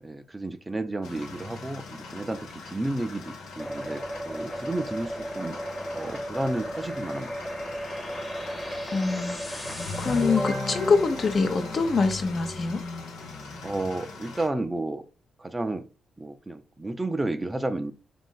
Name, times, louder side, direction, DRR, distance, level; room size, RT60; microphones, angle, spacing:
voice 1, 0.0-5.6 5.9-7.3 13.6-15.0 15.4-15.8 16.2-17.9, right 2 dB, 20° right, 0.5 m, -32 dB
sound 1, 1.0-14.5, left 3 dB, 90° left, 0.7 m, -39 dB
sound 2, 3.6-12.2, equal, 15° left, 1.0 m, -35 dB
voice 2, 8.9-9.7 10.0-12.8, left 4 dB, 45° left, 0.8 m, -25 dB
3.6 x 2.5 x 3.9 m
cardioid pair, 70°, 0 cm